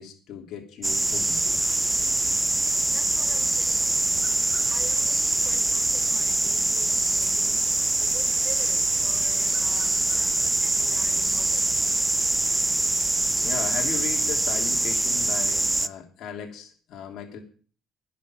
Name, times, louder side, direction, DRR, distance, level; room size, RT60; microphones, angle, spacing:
voice 1, 0.0-1.7 13.4-17.4, left 8 dB, 70° left, 3 dB, 3.0 m, -37 dB
sound 1, 0.8-15.9, right 2 dB, 15° right, 0.7 m, -24 dB
voice 2, 2.9-4.0 4.7-11.7, right 8 dB, 65° right, 8 dB, 2.0 m, -46 dB
10.5 x 6.8 x 9.1 m, 0.41 s
supercardioid pair, 70°, 0 cm